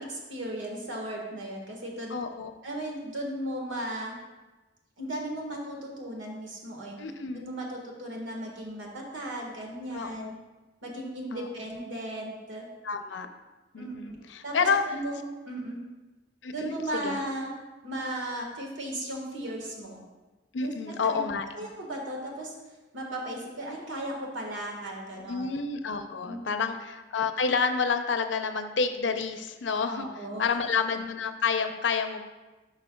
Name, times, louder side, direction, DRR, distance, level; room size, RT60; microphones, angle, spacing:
voice 1, 0.3-2.2 2.6-4.1 5.0-7.0 7.3-10.4 10.8-12.7 13.7-14.2 14.4-15.2 15.5-15.8 16.5-17.5 17.8-20.0 20.6-21.3 21.6-22.5 22.9-25.5 26.2-26.6 29.9-30.6, right 1 dB, 85° right, 0 dB, 1.6 m, -36 dB
voice 2, 2.1-2.5 7.0-7.4 9.9-10.3 11.3-11.5 12.8-13.3 13.7-14.8 16.4-17.2 20.5-21.7 25.3-30.1 30.4-32.3, left 5 dB, 70° left, 7 dB, 0.6 m, -29 dB
11.5 x 5.7 x 2.3 m, 1.2 s
head